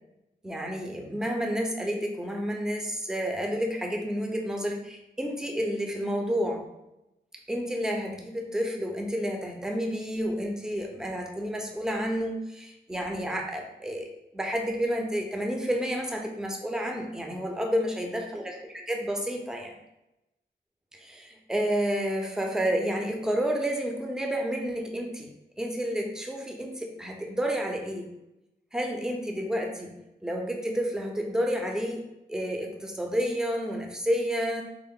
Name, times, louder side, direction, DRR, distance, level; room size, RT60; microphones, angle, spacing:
voice 1, 0.4-6.7 7.5-14.1 14.3-18.6 18.9-19.8 20.9-25.3 25.6-28.1 28.7-34.6, equal, 5° right, 2 dB, 0.5 m, -30 dB
3.6 x 2.0 x 3.6 m, 0.90 s
cardioid pair, 65°, 18 cm